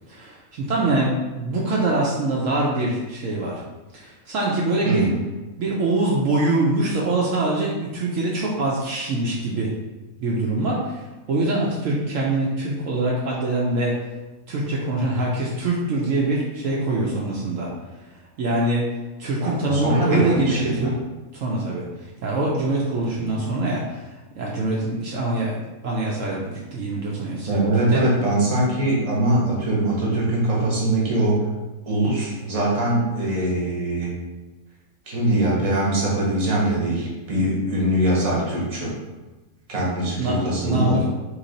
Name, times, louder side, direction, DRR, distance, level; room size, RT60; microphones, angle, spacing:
voice 1, 0.1-3.6 3.9-5.1 5.6-9.7 10.2-13.9 14.5-17.7 18.4-18.8 19.2-21.0 21.3-21.9 22.2-24.1 24.4-25.6 25.8-28.0 40.2-41.0, right 2 dB, 70° right, -4 dB, 1.0 m, -24 dB
voice 2, 4.8-5.1 19.4-20.9 23.2-23.4 27.5-31.4 31.9-34.1 35.1-38.9 39.7-41.0, right 1 dB, 30° right, -4 dB, 0.9 m, -22 dB
3.1 x 2.8 x 3.8 m, 1.1 s
omnidirectional pair, 1.5 m